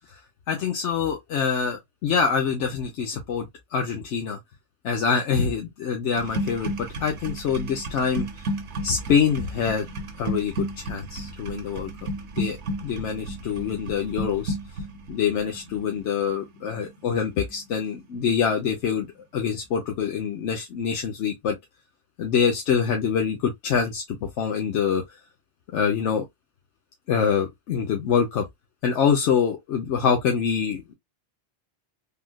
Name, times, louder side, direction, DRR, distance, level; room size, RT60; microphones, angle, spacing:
voice 1, 0.5-4.4 4.8-8.3 8.8-9.9 10.2-11.9 12.4-12.6 12.8-14.5 15.1-19.1 19.3-21.6 22.2-25.2 25.7-26.2 27.1-28.5 28.8-30.9, left 6 dB, 90° left, 1.0 m, -25 dB
sound 1, 6.1-18.0 18.3-18.7, right 1 dB, 75° right, 1.0 m, -33 dB
3.5 x 2.3 x 2.2 m
omnidirectional pair, 1.2 m